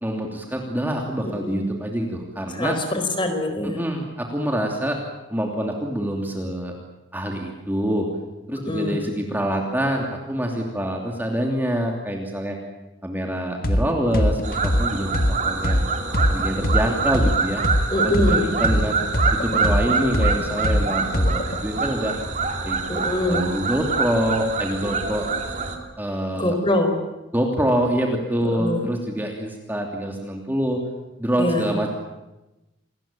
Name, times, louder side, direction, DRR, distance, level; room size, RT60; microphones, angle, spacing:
voice 1, 0.0-2.8 3.6-5.0 5.3-6.8 7.1-8.1 8.5-12.6 13.0-15.8 16.3-17.6 18.0-19.0 19.3-22.1 22.6-22.8 23.3-25.3 26.0-26.6 27.3-30.8 31.2-31.9, equal, 10° right, 1 dB, 2.9 m, -25 dB
voice 2, 1.2-1.6 2.6-3.8 8.7-9.0 17.9-18.5 22.9-23.4 26.3-26.9 28.4-28.8 31.4-31.7, left 1 dB, 25° left, 6 dB, 4.6 m, -24 dB
sound 1, 13.6-13.8 14.1-17.8 18.1-21.6, equal, 45° left, 1.8 m, -21 dB
sound 2, 14.4-25.8, right 4 dB, 35° right, 3.0 m, -26 dB
28.5 x 20.0 x 9.0 m, 0.98 s
head